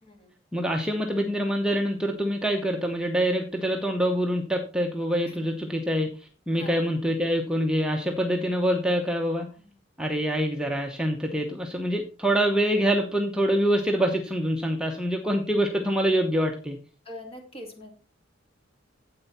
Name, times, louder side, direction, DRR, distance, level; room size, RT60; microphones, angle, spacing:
voice 1, 0.0-0.4 5.3-5.5 6.5-6.8 9.6-9.8 17.0-17.9, left 1 dB, 30° left, 3 dB, 2.4 m, -44 dB
voice 2, 0.5-9.5 10.0-16.8, equal, 5° right, 1 dB, 0.9 m, -25 dB
9.6 x 8.0 x 4.2 m, 0.35 s
head